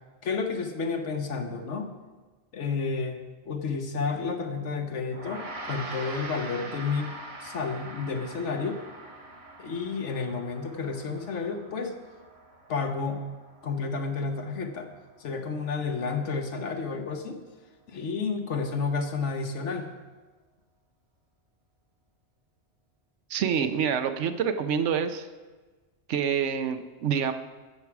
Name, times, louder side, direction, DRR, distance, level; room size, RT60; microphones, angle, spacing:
voice 1, 0.2-1.9 2.5-3.2 3.4-7.1 7.4-8.8 9.6-11.9 12.7-13.3 13.6-14.9 15.2-17.4 17.9-19.9, left 4 dB, 85° left, 4 dB, 1.3 m, -31 dB
Gong, 5.1-14.7, right 2 dB, 60° right, 1.6 m, -43 dB
voice 2, 23.3-25.3 26.1-27.3, right 7 dB, 90° right, 8 dB, 1.0 m, -27 dB
15.5 x 6.0 x 4.7 m, 1.3 s
omnidirectional pair, 1.2 m